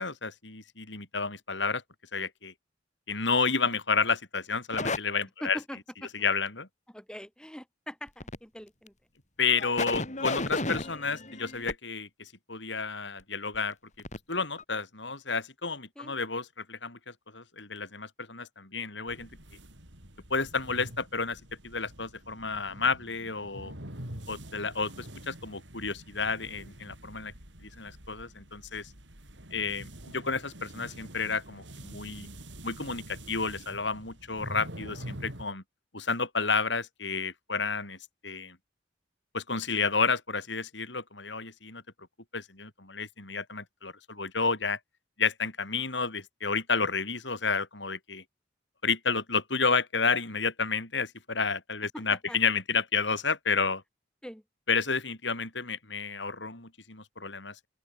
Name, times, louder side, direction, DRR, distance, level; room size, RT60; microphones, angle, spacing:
voice 1, 0.0-1.8 2.1-2.5 3.1-5.6 6.1-6.7 9.4-13.8 14.3-17.0 17.3-19.3 20.3-23.7 24.3-27.3 27.6-28.9 29.5-32.3 32.6-35.6 35.9-38.0 38.2-38.6 39.3-41.8 42.3-44.8 45.2-48.2 48.8-53.8 54.7-57.5, left 4 dB, 70° left, 5.8 m, -31 dB
sound 1, 4.7-5.0 8.1-8.4 8.9-9.0 9.5-11.7 13.5-13.6 14.0-14.2 14.6-14.7, left 2 dB, 40° left, 6.8 m, -33 dB
voice 2, 5.4-6.1 6.9-8.9 16.0-16.2 51.9-52.4 54.2-54.4, equal, 5° left, 5.3 m, -42 dB
sound 2, 19.1-35.4, right 1 dB, 75° right, 7.4 m, -46 dB
open air
head